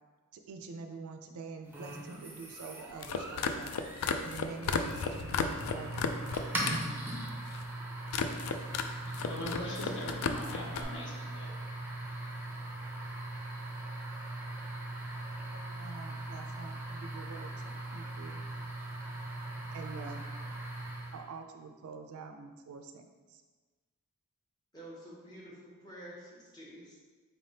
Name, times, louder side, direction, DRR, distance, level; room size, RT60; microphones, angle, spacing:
voice 1, 0.3-3.9 4.2-6.3 6.6-7.2 15.5-18.4 19.7-20.2 21.1-23.4, right 4 dB, 65° right, 5 dB, 0.3 m, -46 dB
sound 1, 1.7-21.3, right 1 dB, 10° right, 0.5 m, -40 dB
sound 2, 2.9-6.9 7.1-7.6 8.1-8.9 9.1-10.8, left 5 dB, 85° left, 0.3 m, -34 dB
voice 2, 9.0-11.6, left 1 dB, 50° left, -1 dB, 0.7 m, -41 dB
voice 3, 24.7-27.0, right 1 dB, 20° left, -5 dB, 0.9 m, -49 dB
4.2 x 3.3 x 2.7 m, 1.3 s
head